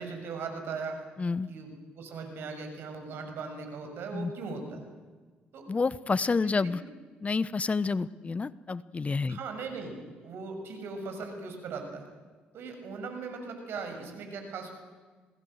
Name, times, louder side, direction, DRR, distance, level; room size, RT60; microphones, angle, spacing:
voice 1, 0.0-1.0 1.5-4.8 5.5-5.6 6.6-6.7 9.3-9.9 10.2-12.0 12.5-14.7, right 4 dB, 65° right, 5 dB, 6.6 m, -39 dB
voice 2, 5.7-6.8 7.2-9.4, left 4 dB, 30° left, 18 dB, 0.9 m, -29 dB
27.0 x 19.5 x 7.9 m, 1.4 s
hypercardioid pair, 55°, 4 cm